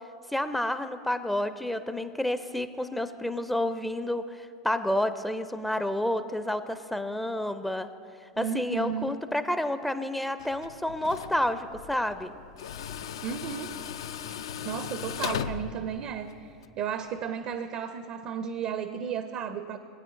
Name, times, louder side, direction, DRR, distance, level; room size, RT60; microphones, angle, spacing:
voice 1, 0.3-7.9 8.4-12.3, left 1 dB, 5° left, 10 dB, 0.4 m, -30 dB
voice 2, 8.4-9.2 13.2-13.8 14.3-19.8, right 7 dB, 50° right, 10 dB, 0.5 m, -34 dB
Tools, 10.4-16.7, left 8 dB, 70° left, 0.4 m, -38 dB
19.5 x 8.9 x 2.5 m, 2.5 s
hypercardioid pair, 90°, 3 cm